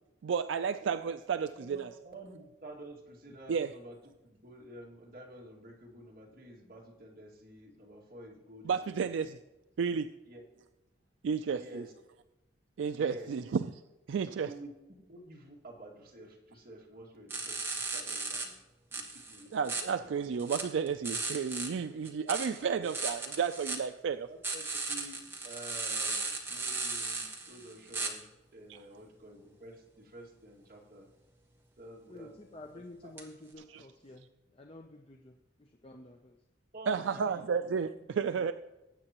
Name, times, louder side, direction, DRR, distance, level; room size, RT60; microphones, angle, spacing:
voice 1, 0.2-1.9 3.5-3.7 8.6-9.4 9.8-10.1 11.2-11.9 12.8-13.8 14.1-14.6 19.5-24.3 28.7-28.8 33.7-33.9 36.9-38.5, right 6 dB, 80° right, 10 dB, 0.3 m, -32 dB
voice 2, 1.5-4.0 4.2-9.2 10.3-10.4 11.5-11.9 12.9-13.3 14.4-14.7 15.1-18.5 18.9-20.0 22.3-22.8 24.3-28.2 28.5-31.1 31.8-33.1 36.7-37.7, right 1 dB, 50° right, -2 dB, 2.2 m, -50 dB
sound 1, 17.3-18.5 18.9-19.8 20.4-21.7 22.0-23.8 24.4-28.1 33.2-33.3, right 3 dB, 15° right, 1.2 m, -36 dB
voice 3, 32.1-34.3 34.5-36.4 37.0-37.1 38.3-38.5, left 2 dB, 30° left, 3 dB, 0.6 m, -51 dB
19.5 x 8.5 x 3.0 m, 1.0 s
head